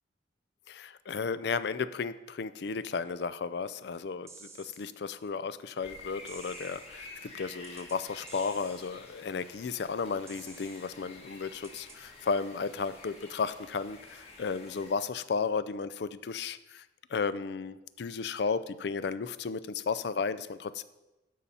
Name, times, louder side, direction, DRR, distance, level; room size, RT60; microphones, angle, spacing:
voice 1, 0.7-16.8 17.1-20.8, left 5 dB, 60° left, 15 dB, 0.4 m, -34 dB
sound 1, 4.3-4.9 6.3-6.9 7.6-8.0 8.3-8.9 10.3-10.9 11.6-12.0, right 4 dB, 15° right, 0.7 m, -51 dB
sound 2, 5.8-14.9, left 2 dB, 35° left, 1.5 m, -50 dB
12.5 x 5.5 x 4.2 m, 1.0 s
head